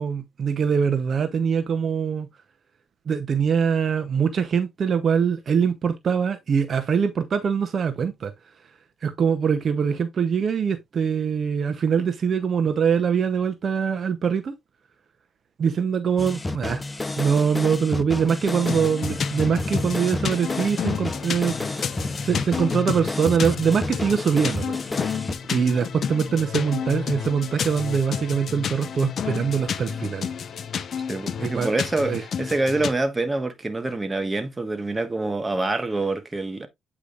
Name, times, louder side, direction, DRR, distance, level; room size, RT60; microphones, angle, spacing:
voice 1, 0.0-2.3 3.1-8.3 9.0-14.5 15.6-16.8 17.2-24.8 25.5-30.3 31.4-31.7 32.1-32.2, right 6 dB, 50° right, 0.8 m, -23 dB
sound 1, 16.2-25.3, left 2 dB, 15° left, 0.7 m, -30 dB
sound 2, 18.6-32.9, left 7 dB, 55° left, 0.7 m, -30 dB
voice 2, 31.1-36.7, right 2 dB, 20° right, 1.3 m, -26 dB
8.4 x 5.0 x 2.5 m
cardioid pair, 90°, 0 cm